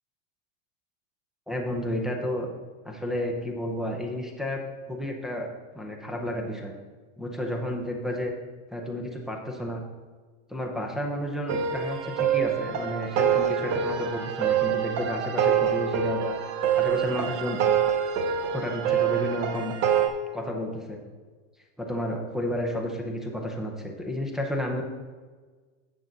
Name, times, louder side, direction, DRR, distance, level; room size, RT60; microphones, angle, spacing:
voice 1, 1.5-2.5 2.8-4.6 4.9-5.5 5.7-6.7 7.2-8.4 8.7-9.8 10.5-16.4 16.7-17.6 18.5-19.8 20.3-21.0 21.8-24.8, left 1 dB, ahead, -1 dB, 0.5 m, -31 dB
sound 1, 11.5-20.1, right 8 dB, 35° right, 0.9 m, -26 dB
9.0 x 7.4 x 3.9 m, 1.4 s
supercardioid pair, 160°, 40 cm